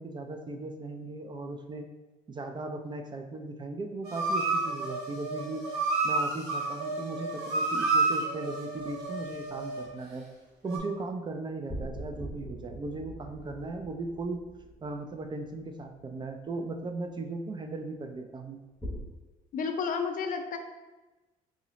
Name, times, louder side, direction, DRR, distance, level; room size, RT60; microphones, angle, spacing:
voice 1, 0.0-1.9 2.3-5.6 6.0-10.3 10.6-14.4 14.8-18.6, right 2 dB, 25° right, 5 dB, 0.4 m, -37 dB
sound 1, 4.0-9.9 10.7-10.8, right 3 dB, 75° right, 0.8 m, -30 dB
sound 2, 9.0-9.7 11.7-16.1 18.8-19.0, equal, 5° left, 0.8 m, -42 dB
voice 2, 19.5-20.6, left 5 dB, 55° left, 5 dB, 0.5 m, -31 dB
3.7 x 2.9 x 3.0 m, 1.1 s
cardioid pair, 90°, 17 cm